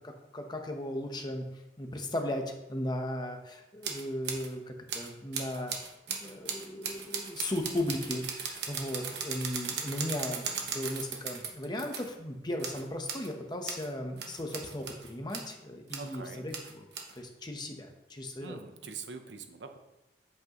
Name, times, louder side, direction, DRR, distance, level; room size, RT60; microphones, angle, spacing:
voice 1, 0.0-1.4 1.8-5.7 6.1-16.5 17.2-18.6, left 1 dB, 25° left, 3 dB, 1.0 m, -36 dB
sound 1, 3.8-4.5 4.9-12.1 12.6-13.3 13.6-13.9 14.2-15.5 15.9-16.2 16.5-17.2, right 6 dB, 70° right, 1.2 m, -37 dB
voice 2, 16.0-16.5 18.4-19.8, right 5 dB, 90° right, 6 dB, 0.9 m, -44 dB
8.3 x 8.0 x 3.0 m, 0.96 s
head